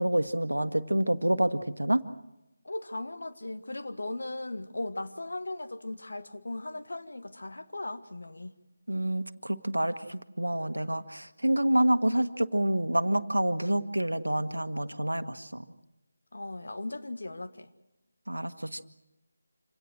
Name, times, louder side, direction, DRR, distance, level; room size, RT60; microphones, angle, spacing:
voice 1, 0.0-2.0 8.9-15.6 18.3-18.9, right 1 dB, 85° right, 1.4 m, -28 dB
voice 2, 2.6-8.5 16.3-17.7, left 2 dB, 65° left, 1.6 m, -37 dB
26.5 x 17.5 x 7.6 m
figure-of-eight pair, 160°, 0 cm